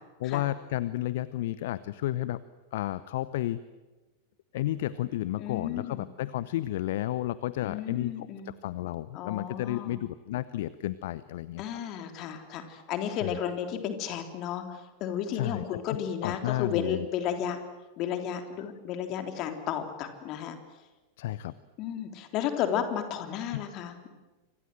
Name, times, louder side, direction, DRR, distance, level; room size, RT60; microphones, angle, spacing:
voice 1, 0.2-2.4 2.7-3.6 4.5-8.1 8.4-11.6 13.2-13.4 15.3-16.0 16.2-17.0 21.2-21.6 23.5-23.6, left 14 dB, 55° left, 17 dB, 0.8 m, -32 dB
voice 2, 5.4-6.1 7.6-8.5 9.1-9.9 11.6-17.6 18.0-20.6 21.8-24.1, left 9 dB, 40° left, 6 dB, 3.4 m, -33 dB
29.0 x 25.5 x 7.7 m, 1.2 s
figure-of-eight pair, 90°, 0 cm